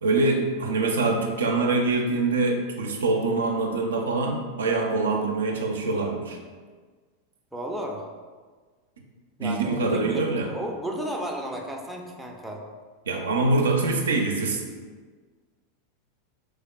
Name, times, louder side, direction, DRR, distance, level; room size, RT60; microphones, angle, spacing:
voice 1, 0.0-6.4 9.4-10.5 13.1-14.6, right 3 dB, 70° right, 2 dB, 0.4 m, -24 dB
voice 2, 7.5-8.1 9.4-12.6, right 1 dB, 5° right, 0 dB, 0.4 m, -33 dB
3.4 x 3.2 x 2.2 m, 1.5 s
figure-of-eight pair, 90°, 0 cm